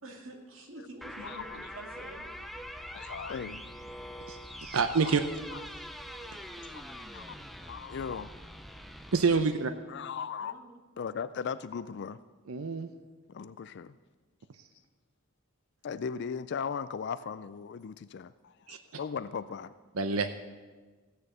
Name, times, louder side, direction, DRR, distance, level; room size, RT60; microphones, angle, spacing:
voice 1, 0.0-2.4 3.4-3.6 5.2-5.3 9.3-9.7 10.4-10.8, right 1 dB, 70° right, 2 dB, 2.2 m, -48 dB
sound 1, 1.0-9.4, equal, ahead, 0.6 m, -44 dB
voice 2, 1.2-1.6 2.9-3.6 5.0-5.2 5.5-5.6 6.6-7.4 7.7-8.4 9.9-10.6 11.0-12.2 13.3-14.0 15.8-19.7, left 6 dB, 55° left, 14 dB, 0.4 m, -38 dB
voice 3, 4.3-5.2 9.1-9.7 12.5-12.9 18.7-18.8 20.0-20.4, right 4 dB, 85° right, 8 dB, 0.7 m, -27 dB
15.5 x 6.9 x 8.0 m, 1.4 s
head